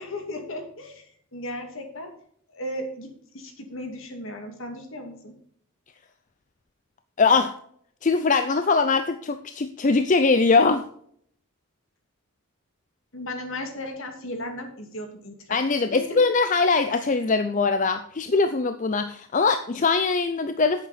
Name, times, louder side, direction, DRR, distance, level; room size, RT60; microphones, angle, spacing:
voice 1, 0.0-2.1 2.5-5.3 13.1-15.6 15.9-16.0, left 1 dB, 60° left, 4 dB, 2.4 m, -36 dB
voice 2, 7.2-7.5 8.0-10.8 15.5-20.9, left 4 dB, 35° left, 9 dB, 0.5 m, -22 dB
10.5 x 8.3 x 4.1 m, 0.63 s
head